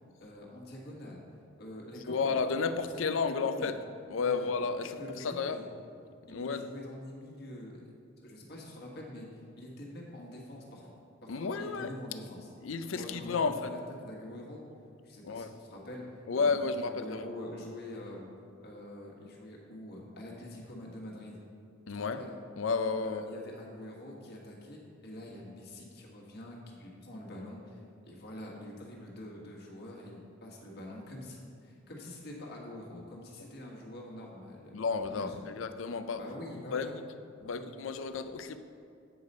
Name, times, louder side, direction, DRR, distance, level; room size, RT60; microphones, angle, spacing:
voice 1, 0.2-1.2 1.6-2.6 2.9-3.7 4.2-4.5 4.8-5.7 6.3-7.8 8.2-9.3 9.6-12.5 12.9-14.6 15.0-16.1 16.3-18.3 18.6-21.4 21.9-22.4 23.0-34.8 35.1-35.5 36.1-36.9 37.4-37.7, left 1 dB, 55° left, -2 dB, 1.6 m, -45 dB
voice 2, 2.1-3.8 4.1-5.6 6.3-6.7 11.3-11.9 12.6-13.7 15.2-15.5 16.3-17.2 21.9-22.2 22.6-23.2 34.7-36.2 36.7-36.9 37.4-38.6, left 4 dB, 85° left, 10 dB, 0.5 m, -32 dB
8.5 x 4.9 x 5.4 m, 2.4 s
head